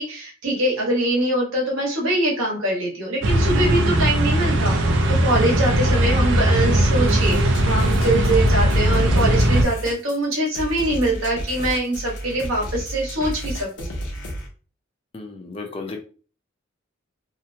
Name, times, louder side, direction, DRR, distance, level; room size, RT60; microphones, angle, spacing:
voice 1, 0.0-4.8 5.1-13.9, right 1 dB, 85° right, -2 dB, 1.2 m, -23 dB
sound 1, 3.2-9.6, right 1 dB, 65° right, 0.5 m, -19 dB
sound 2, 7.1-14.5, equal, 65° left, 0.7 m, -31 dB
voice 2, 15.1-16.0, left 3 dB, 30° left, 3 dB, 0.4 m, -34 dB
2.8 x 2.1 x 2.6 m, 0.38 s
head